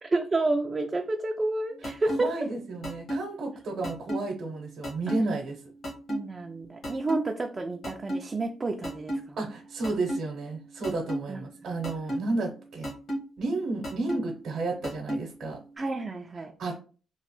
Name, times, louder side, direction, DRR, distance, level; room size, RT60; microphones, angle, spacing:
voice 1, 0.0-2.3 6.1-9.4 11.3-11.4 11.7-12.2 15.8-16.5, right 2 dB, 30° right, 4 dB, 0.3 m, -30 dB
sound 1, 1.8-2.2 2.8-3.2 3.8-4.2 4.8-5.2 5.8-6.2 6.8-7.2 7.8-8.2 8.8-9.2 9.8-10.2 10.8-11.2 11.8-12.2 12.8-13.2 13.8-14.2 14.8-15.2, equal, 60° left, 1.2 m, -30 dB
voice 2, 2.2-5.5 9.4-12.9 13.4-15.6 16.6-16.7, right 3 dB, 65° right, 0 dB, 0.7 m, -32 dB
3.0 x 2.0 x 3.0 m, 0.38 s
cardioid pair, 90°, 0 cm